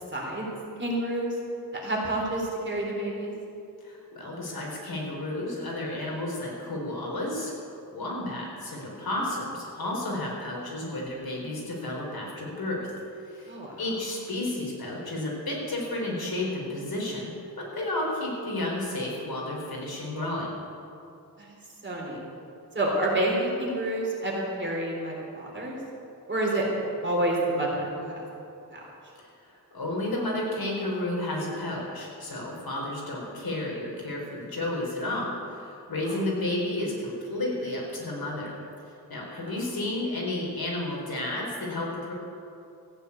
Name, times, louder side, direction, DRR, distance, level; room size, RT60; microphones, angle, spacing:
voice 1, 0.1-0.5 0.8-1.4 1.7-3.3 13.5-13.8 21.4-21.6 21.8-22.2 22.7-25.8 26.3-26.6 27.0-28.3 28.7-28.8 36.0-36.2 39.4-39.5, right 1 dB, 30° right, -3 dB, 3.7 m, -29 dB
voice 2, 3.8-7.5 7.9-12.9 13.3-20.6 29.4-38.5 39.1-42.1, left 1 dB, 70° left, -2 dB, 4.2 m, -32 dB
15.0 x 9.5 x 8.5 m, 2.7 s
wide cardioid pair, 145°, 38 cm